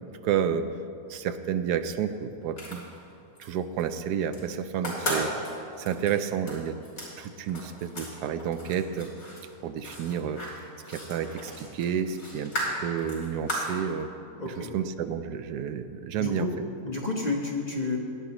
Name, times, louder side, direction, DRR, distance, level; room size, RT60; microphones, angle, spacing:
voice 1, 0.2-0.6 1.1-2.8 3.4-5.3 5.8-6.8 7.2-9.1 9.6-10.4 10.9-12.5 12.8-14.1 14.4-16.7, right 8 dB, 85° right, 10 dB, 1.1 m, -30 dB
sound 1, 2.4-3.5 3.8-4.4 4.7-8.1 8.4-13.8, equal, 60° left, 3.4 m, -35 dB
voice 2, 14.4-14.7 16.1-16.5 16.8-18.0, left 3 dB, 30° left, -1 dB, 0.9 m, -30 dB
16.5 x 10.0 x 3.0 m, 2.5 s
omnidirectional pair, 1.7 m